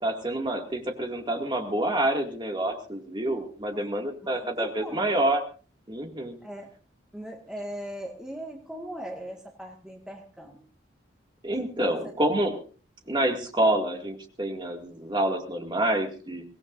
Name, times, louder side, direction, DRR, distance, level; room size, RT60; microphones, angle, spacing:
voice 1, 0.0-5.4 5.9-6.4 11.4-12.6 13.1-16.4, right 1 dB, 25° right, 3 dB, 2.2 m, -27 dB
voice 2, 4.2-5.1 6.4-6.7 7.1-10.6 11.8-12.1, equal, 5° right, 0 dB, 1.8 m, -39 dB
24.0 x 18.0 x 2.6 m, 0.39 s
head